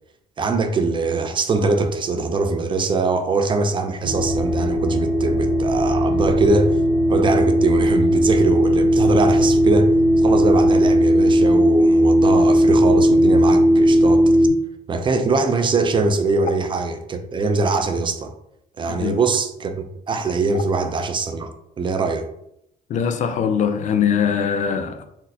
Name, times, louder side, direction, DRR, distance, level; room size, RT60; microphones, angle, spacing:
voice 1, 0.4-6.8 7.1-14.2 14.9-18.3 18.8-21.5 21.8-22.3, right 3 dB, 30° right, 0.4 m, -22 dB
sound 1, 4.0-14.5, equal, 60° right, 0.7 m, -17 dB
voice 2, 18.9-19.2 22.9-25.1, left 7 dB, 45° left, 0.4 m, -22 dB
4.0 x 2.1 x 2.7 m
cardioid pair, 110°, 17 cm